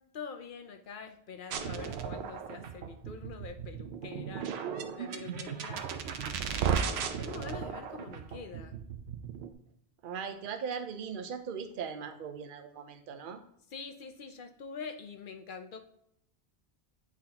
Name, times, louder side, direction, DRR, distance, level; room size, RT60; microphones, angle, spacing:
voice 1, 0.1-4.6 5.0-5.9 6.5-8.8 13.7-15.8, left 5 dB, 60° left, 8 dB, 0.7 m, -45 dB
sound 1, 1.5-9.5, right 7 dB, 85° right, 0.8 m, -35 dB
voice 2, 10.0-13.4, right 6 dB, 55° right, 7 dB, 0.8 m, -39 dB
8.5 x 4.0 x 2.8 m, 0.73 s
omnidirectional pair, 1.1 m